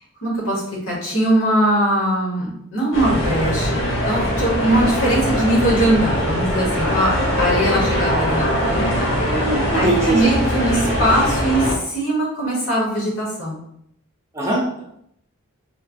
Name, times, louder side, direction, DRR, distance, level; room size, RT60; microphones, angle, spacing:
voice 1, 0.2-3.8 4.0-9.1 9.7-13.6, right 1 dB, 75° left, -4 dB, 1.0 m, -21 dB
sound 1, 2.9-11.7, equal, 60° left, 0.8 m, -21 dB
voice 2, 9.1-10.3 14.3-14.8, right 2 dB, 15° right, -5 dB, 0.5 m, -22 dB
3.0 x 2.1 x 2.5 m, 0.71 s
head